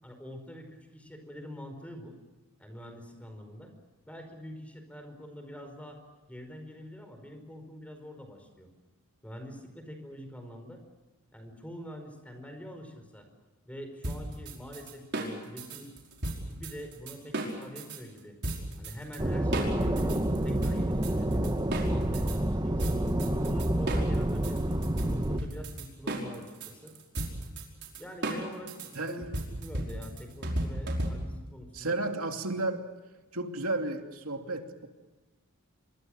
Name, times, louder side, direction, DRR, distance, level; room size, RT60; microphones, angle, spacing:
voice 1, 0.0-2.2 2.6-3.7 4.0-6.0 6.3-8.7 9.2-10.8 11.3-13.3 13.6-15.9 16.5-18.4 18.8-20.2 20.4-21.6 21.8-23.0 23.4-24.8 25.1-27.0 28.0-32.0, equal, 5° left, 6 dB, 5.0 m, -45 dB
sound 1, 14.0-18.0 18.4-19.2 19.5-22.4 22.8-31.5, right 1 dB, 55° right, 5.3 m, -35 dB
sound 2, 19.2-25.4, right 1 dB, 20° right, 1.2 m, -28 dB
voice 2, 28.9-29.3 31.7-32.9 33.3-34.9, right 2 dB, 75° right, 4 dB, 2.8 m, -33 dB
26.5 x 24.0 x 6.5 m, 1.2 s
head